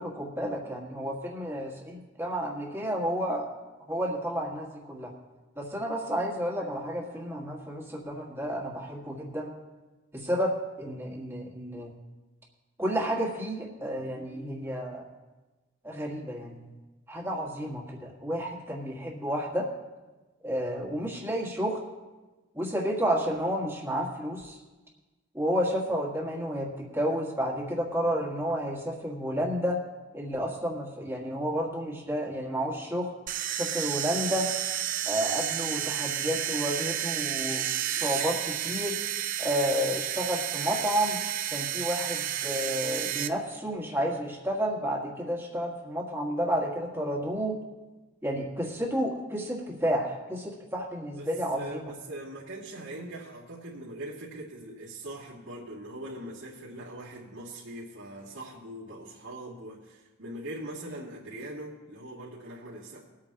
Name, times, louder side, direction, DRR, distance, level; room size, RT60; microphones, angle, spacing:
voice 1, 0.0-3.5 3.9-5.1 5.6-9.5 10.1-11.9 12.8-15.0 15.8-16.7 17.1-19.7 20.4-21.8 22.5-24.6 25.3-29.8 30.1-33.1 33.5-34.5 35.0-38.9 39.4-41.2 41.5-47.6 48.2-51.8, equal, 10° right, -1 dB, 1.7 m, -31 dB
sound 1, 33.3-43.3, right 11 dB, 40° right, 0.5 m, -31 dB
voice 2, 51.5-63.0, right 1 dB, 80° right, -10 dB, 2.5 m, -41 dB
21.5 x 8.8 x 2.9 m, 1.2 s
head